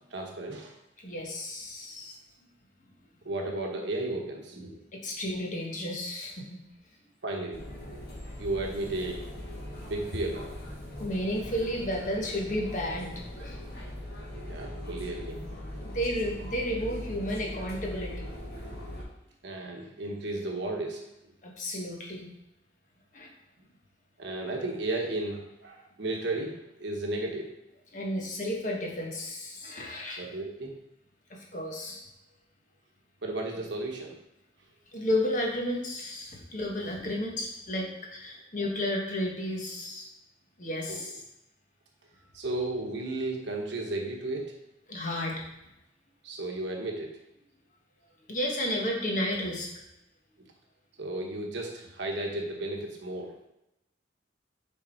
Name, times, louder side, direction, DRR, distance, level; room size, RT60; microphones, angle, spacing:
voice 1, 0.1-0.7 3.2-4.8 7.2-7.6 8.4-9.2 9.9-10.5 14.4-15.4 19.4-21.0 24.2-27.5 30.2-30.7 33.2-34.2 40.9-41.0 42.3-44.6 46.2-47.2 51.0-53.3, right 2 dB, 70° right, 1 dB, 1.2 m, -34 dB
voice 2, 1.0-2.2 4.9-6.6 11.0-13.6 15.9-18.3 21.4-22.3 23.1-23.3 27.9-30.2 31.3-32.0 34.9-40.1 40.6-41.1 44.9-45.4 48.3-49.8, left 1 dB, 40° left, 0 dB, 1.1 m, -32 dB
sound 1, 7.5-19.0, left 1 dB, 60° left, 1.7 m, -40 dB
6.7 x 3.7 x 4.4 m, 0.87 s
head